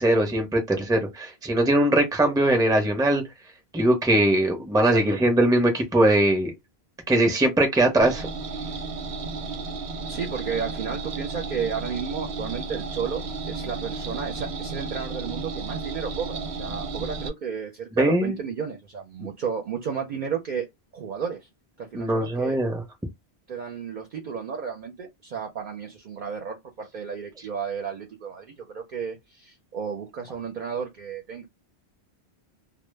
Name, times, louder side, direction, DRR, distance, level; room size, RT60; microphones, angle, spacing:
voice 1, 0.0-3.2 3.7-6.5 7.1-8.3 18.0-18.4 21.9-22.8, right 1 dB, 5° right, 0.5 m, -21 dB
voice 2, 4.8-5.2 10.1-13.2 13.5-20.7 20.9-21.5 21.8-22.6 23.5-31.5, right 6 dB, 55° right, 0.6 m, -33 dB
sound 1, 8.0-17.3, right 3 dB, 90° right, 0.9 m, -33 dB
2.0 x 2.0 x 3.1 m
omnidirectional pair, 1.1 m